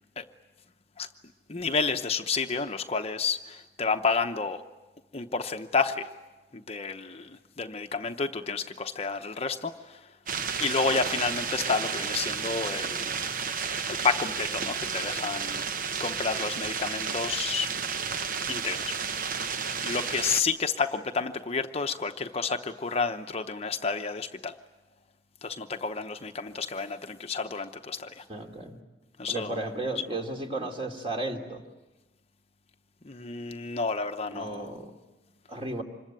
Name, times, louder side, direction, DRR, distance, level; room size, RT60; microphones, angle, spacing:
voice 1, 1.5-4.6 5.1-6.1 6.5-10.0 10.6-13.1 13.9-15.6 16.0-17.7 18.5-18.9 19.2-19.3 19.8-24.5 25.4-28.2 29.2-29.6 33.0-34.6, left 4 dB, 35° left, 6 dB, 0.8 m, -30 dB
sound 1, 10.3-20.4, right 6 dB, 50° right, 0.9 m, -32 dB
voice 2, 28.3-28.8 29.3-31.6 34.3-34.9 35.5-35.8, right 2 dB, 30° right, 3 dB, 2.9 m, -34 dB
26.5 x 22.0 x 9.1 m, 1.1 s
head